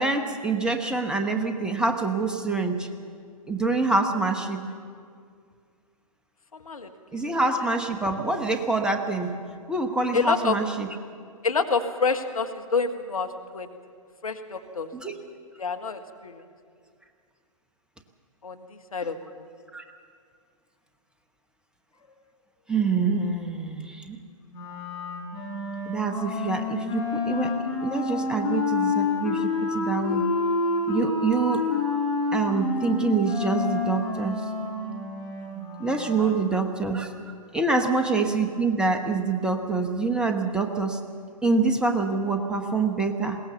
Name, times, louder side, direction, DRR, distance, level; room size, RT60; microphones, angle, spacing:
voice 1, 0.0-2.9 3.5-4.6 7.1-9.4 9.7-10.9 14.9-15.1 19.7-19.8 22.7-24.2 25.9-30.3 30.9-31.6 32.3-34.4 35.8-37.1 37.5-41.0 41.4-43.4, right 3 dB, 5° right, 4 dB, 1.1 m, -26 dB
voice 2, 6.5-6.9 10.1-10.6 11.4-13.7 14.2-14.9 15.6-16.4 18.4-19.5 36.2-36.3, left 4 dB, 70° left, 6 dB, 1.6 m, -28 dB
Wind instrument woodwind instrument, 24.5-36.6, left 3 dB, 20° left, 6.4 m, -28 dB
21.5 x 18.5 x 7.0 m, 2.2 s
figure-of-eight pair, 115°, 19 cm